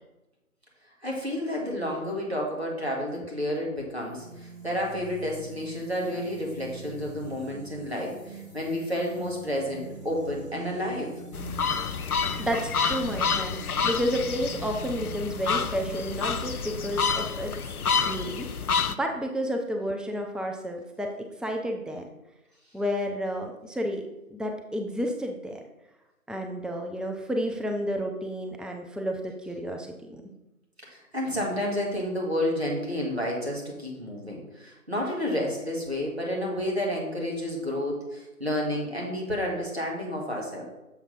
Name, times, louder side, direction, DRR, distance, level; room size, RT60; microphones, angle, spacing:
voice 1, 1.0-11.1 30.8-40.6, left 1 dB, 45° right, -2 dB, 1.8 m, -30 dB
sound 1, 4.0-18.7, right 2 dB, 20° right, 2.4 m, -44 dB
sound 2, 11.3-18.9, left 6 dB, 75° left, 0.5 m, -29 dB
voice 2, 12.0-17.5 17.9-18.5 18.9-21.1 21.4-22.1 22.7-24.0 24.3-25.6 26.3-30.2, equal, ahead, 2 dB, 0.4 m, -31 dB
7.2 x 3.5 x 5.2 m, 1.0 s
figure-of-eight pair, 175°, 45 cm